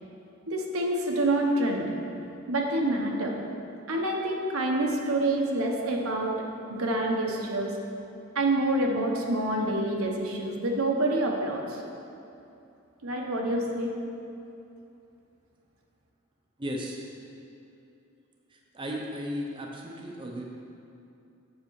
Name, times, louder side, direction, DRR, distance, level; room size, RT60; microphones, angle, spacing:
voice 1, 0.5-1.9 2.5-3.3 3.9-7.7 8.3-11.8 13.0-13.9, right 1 dB, 80° right, 0 dB, 1.0 m, -27 dB
voice 2, 16.6-17.0 18.5-20.4, equal, 25° right, -1 dB, 0.7 m, -35 dB
7.4 x 6.7 x 4.6 m, 2.8 s
head